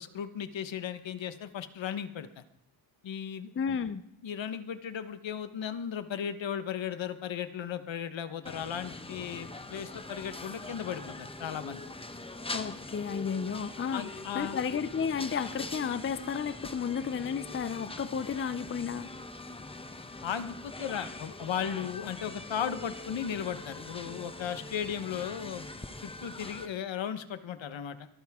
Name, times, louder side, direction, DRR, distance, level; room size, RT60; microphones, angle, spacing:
voice 1, 0.0-2.4 3.0-3.5 4.2-11.9 13.9-14.6 20.2-25.6 26.0-28.1, left 8 dB, 65° left, 11 dB, 1.2 m, -36 dB
voice 2, 3.6-4.0 12.5-14.0 14.3-19.1, left 6 dB, 25° left, 13 dB, 0.5 m, -32 dB
sound 1, 8.5-26.7, left 2 dB, 10° left, 0.9 m, -43 dB
23.0 x 14.0 x 3.6 m, 0.77 s
wide cardioid pair, 130°, 48 cm